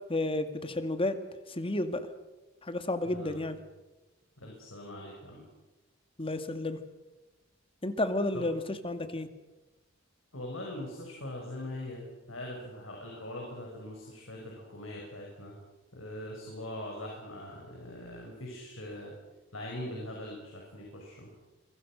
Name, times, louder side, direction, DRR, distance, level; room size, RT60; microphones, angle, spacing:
voice 1, 0.1-1.2 1.5-2.0 2.6-3.6 6.2-6.8 7.8-9.3, left 2 dB, 30° left, 9 dB, 2.0 m, -31 dB
voice 2, 3.0-3.5 4.4-5.4 8.3-8.5 10.3-15.6 15.9-19.1 19.5-21.3, left 1 dB, 85° left, -1 dB, 6.3 m, -42 dB
27.0 x 23.5 x 6.4 m, 1.1 s
head